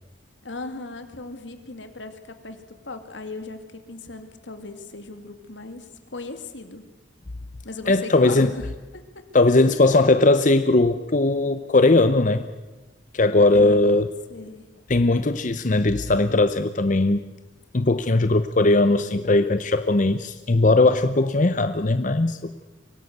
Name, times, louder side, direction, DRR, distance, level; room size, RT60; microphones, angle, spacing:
voice 1, 0.4-6.8 7.6-8.7 8.9-9.3 13.5-14.8, left 3 dB, 80° left, 8 dB, 2.5 m, -38 dB
voice 2, 7.9-8.5 9.3-12.4 13.1-14.1 14.9-17.2 17.7-22.4, left 2 dB, 40° left, 10 dB, 0.7 m, -19 dB
24.0 x 17.5 x 8.1 m, 1.1 s
head